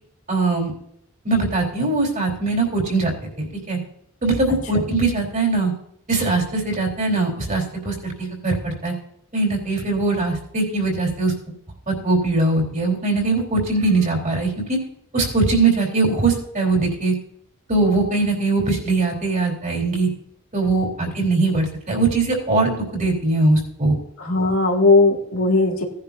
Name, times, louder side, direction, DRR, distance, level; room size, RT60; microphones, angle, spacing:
voice 1, 0.3-0.7 1.2-3.1 3.4-3.8 4.2-5.7 6.1-8.9 9.3-11.3 11.9-14.8 15.1-17.1 17.7-20.1 20.5-24.0, right 3 dB, 35° right, 0 dB, 4.0 m, -21 dB
voice 2, 4.5-4.8 24.2-25.8, left 3 dB, 75° left, 0 dB, 2.6 m, -18 dB
18.0 x 10.5 x 2.8 m, 0.73 s
head